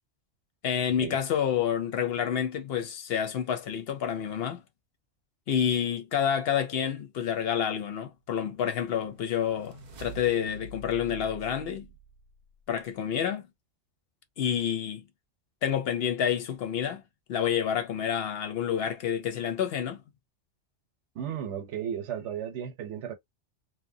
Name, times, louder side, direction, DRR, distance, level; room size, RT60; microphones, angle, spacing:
voice 1, 0.6-4.6 5.5-11.9 12.7-13.4 14.4-15.0 15.6-17.0 17.3-20.0, left 8 dB, 65° left, 0.7 m, -28 dB
sound 1, 8.9-12.7, right 2 dB, 55° right, 0.5 m, -47 dB
voice 2, 21.1-23.1, right 9 dB, 80° right, 1.0 m, -34 dB
2.8 x 2.1 x 2.6 m
omnidirectional pair, 1.2 m